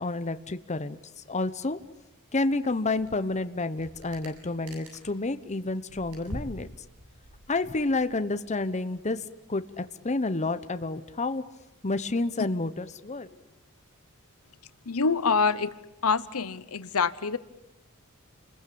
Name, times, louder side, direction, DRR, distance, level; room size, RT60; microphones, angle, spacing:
voice 1, 0.0-1.8 2.3-6.7 7.5-9.2 9.5-11.4 11.8-13.3, left 2 dB, 30° left, 11 dB, 1.0 m, -29 dB
sound 1, 3.0-3.2 3.5-5.2 5.5-8.2, equal, 75° right, 7.7 m, -44 dB
voice 2, 14.9-15.7 16.0-17.4, left 5 dB, 70° left, 15 dB, 1.0 m, -25 dB
29.0 x 21.0 x 8.7 m, 0.88 s
head